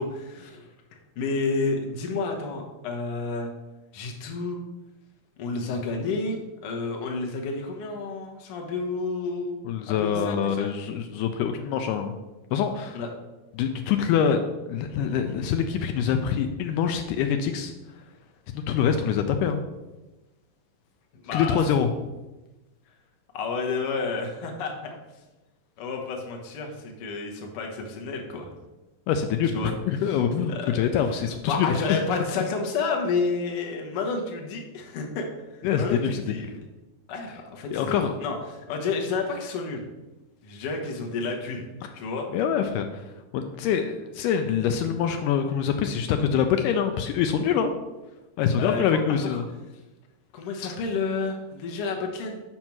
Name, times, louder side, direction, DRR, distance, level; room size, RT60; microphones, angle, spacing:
voice 1, 0.0-3.5 3.9-4.6 5.4-9.6 9.9-10.7 12.9-13.1 21.2-21.7 23.3-24.9 25.8-28.5 29.5-29.7 30.1-30.8 31.1-35.2 35.5-36.6 37.1-39.8 40.4-42.3 48.6-49.4 50.3-52.4, left 4 dB, 60° left, 1 dB, 1.6 m, -30 dB
voice 2, 9.6-12.1 12.5-13.0 13.6-14.4 14.7-17.7 18.5-19.6 21.3-21.9 29.1-32.0 35.6-36.4 37.7-38.2 42.3-43.1 43.3-47.7 48.4-49.4 50.6-50.8, left 8 dB, 80° left, 6 dB, 2.0 m, -25 dB
6.0 x 5.4 x 5.9 m, 1.1 s
omnidirectional pair, 3.9 m